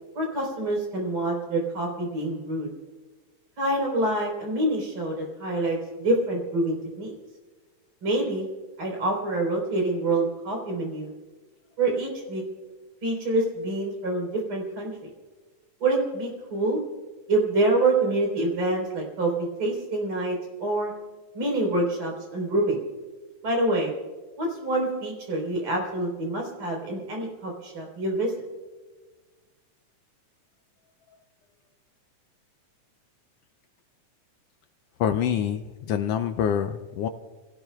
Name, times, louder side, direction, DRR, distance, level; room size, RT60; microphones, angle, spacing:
voice 1, 0.1-2.7 3.6-7.1 8.0-8.5 8.8-11.1 11.8-12.4 13.0-15.1 15.8-16.8 17.3-20.9 21.3-22.8 23.4-23.9 24.4-28.3, right 2 dB, 45° right, 0 dB, 4.7 m, -26 dB
voice 2, 35.0-37.1, left 9 dB, 85° left, 8 dB, 1.4 m, -26 dB
28.5 x 18.0 x 2.3 m, 1.3 s
omnidirectional pair, 3.5 m